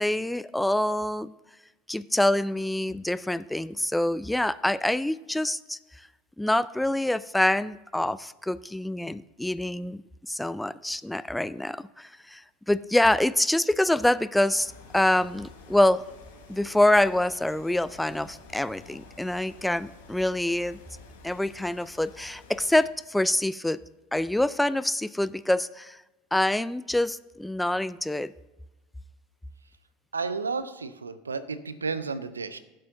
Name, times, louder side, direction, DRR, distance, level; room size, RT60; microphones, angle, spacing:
voice 1, 0.0-1.3 1.9-5.8 6.4-10.0 10.3-12.4 12.7-16.0 16.5-20.8 21.2-23.8 24.1-26.0 26.3-28.3, left 1 dB, 5° left, 17 dB, 0.3 m, -26 dB
sound 1, 14.6-22.9, left 3 dB, 75° left, 2.2 m, -50 dB
voice 2, 30.1-32.6, right 4 dB, 85° right, 14 dB, 0.5 m, -32 dB
15.5 x 7.6 x 2.7 m, 1.1 s
figure-of-eight pair, 75°, 0 cm